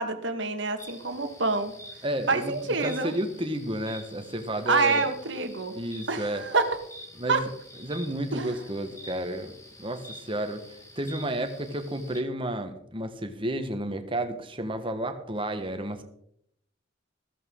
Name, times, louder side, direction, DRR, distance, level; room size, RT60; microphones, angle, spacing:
voice 1, 0.0-1.7 2.3-3.1 4.6-5.7 6.1-6.8 7.3-7.4 8.3-8.5, right 3 dB, 60° right, 7 dB, 1.5 m, -27 dB
sound 1, 0.8-12.2, left 1 dB, 15° left, 1.9 m, -48 dB
voice 2, 2.0-5.0 5.7-6.4 7.2-7.5 7.8-16.0, right 1 dB, 25° right, 7 dB, 1.3 m, -32 dB
14.5 x 14.5 x 3.8 m, 0.72 s
head